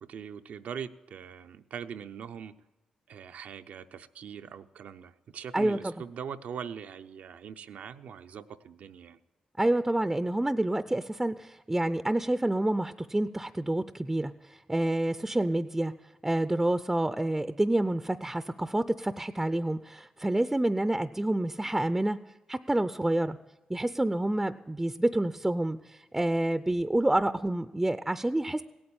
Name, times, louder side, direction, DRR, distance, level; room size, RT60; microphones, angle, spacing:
voice 1, 0.0-2.6 3.1-9.2, right 7 dB, 75° right, 9 dB, 0.6 m, -42 dB
voice 2, 5.5-5.9 9.6-15.9 16.2-22.2 22.5-23.4 23.7-28.6, right 1 dB, 15° right, 12 dB, 0.5 m, -28 dB
17.0 x 8.8 x 8.6 m, 1.0 s
cardioid pair, 60°, 2 cm